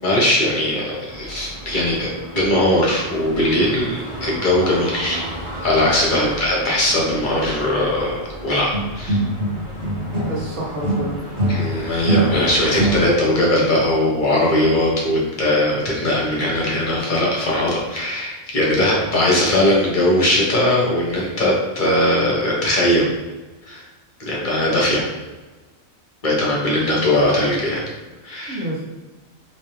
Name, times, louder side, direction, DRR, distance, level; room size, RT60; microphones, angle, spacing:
voice 1, 0.0-5.2 5.6-9.2 11.5-23.1 23.7-23.8 24.2-25.0 26.2-27.8 28.2-28.6, left 1 dB, 45° left, -4 dB, 1.0 m, -19 dB
sound 1, 1.1-13.0, equal, 35° right, 0.6 m, -34 dB
voice 2, 6.1-6.4 10.3-11.2 28.5-28.9, right 1 dB, 85° right, -3 dB, 1.3 m, -28 dB
sound 2, 8.7-10.5 10.8-13.4, right 1 dB, 70° right, 1.6 m, -22 dB
3.3 x 3.0 x 3.0 m, 1.2 s
omnidirectional pair, 1.2 m